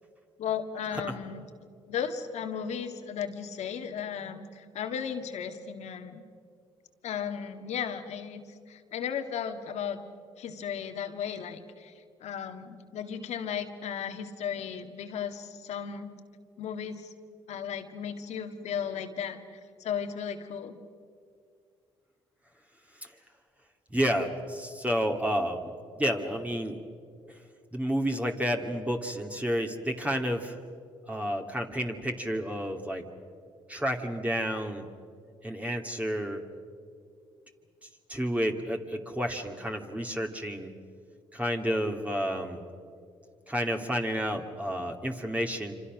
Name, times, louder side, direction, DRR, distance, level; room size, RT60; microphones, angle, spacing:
voice 1, 0.4-1.4 1.9-6.2 7.0-10.0 10.4-11.9 12.2-16.1 16.6-17.1 17.5-19.4 19.8-20.8, left 7 dB, 70° left, 7 dB, 1.8 m, -35 dB
voice 2, 23.9-25.7 26.0-26.8 27.7-30.6 31.1-33.0 33.7-34.9 35.4-36.4 38.1-40.7 41.3-42.6 43.5-45.7, equal, 10° right, 3 dB, 2.4 m, -30 dB
26.5 x 26.0 x 6.3 m, 2.3 s
supercardioid pair, 60°, 12 cm